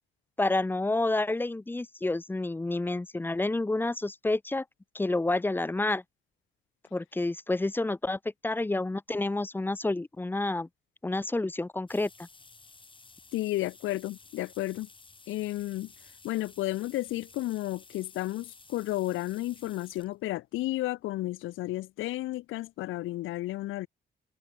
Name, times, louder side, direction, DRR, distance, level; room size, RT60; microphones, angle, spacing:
voice 1, 0.4-4.6 4.9-6.0 6.9-10.7 11.0-12.1, left 2 dB, 10° left, 0.5 m, -29 dB
sound 1, 11.9-20.1 21.0-21.1 22.4-22.5 22.8-22.9 23.2-23.3, left 3 dB, 25° left, 6.3 m, -54 dB
voice 2, 13.3-14.9 15.3-15.9 16.2-23.9, left 16 dB, 85° left, 0.6 m, -32 dB
cardioid pair, 90°, 20 cm